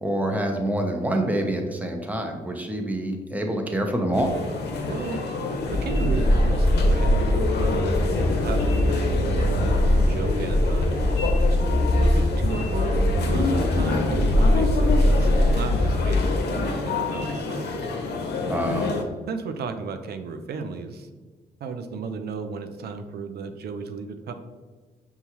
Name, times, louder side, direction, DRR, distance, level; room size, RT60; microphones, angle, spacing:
voice 1, 0.0-4.3 18.5-19.1, right 1 dB, 10° right, 3 dB, 0.8 m, -26 dB
sound 1, 4.1-19.0, left 3 dB, 70° left, 0.6 m, -28 dB
voice 2, 4.9-5.2 5.7-11.0 12.1-17.7 19.3-21.1 21.6-24.3, right 4 dB, 65° right, 7 dB, 0.5 m, -33 dB
sound 2, 5.7-16.3, left 1 dB, 20° left, 0.4 m, -22 dB
5.4 x 2.3 x 3.0 m, 1.4 s
supercardioid pair, 50°, 18 cm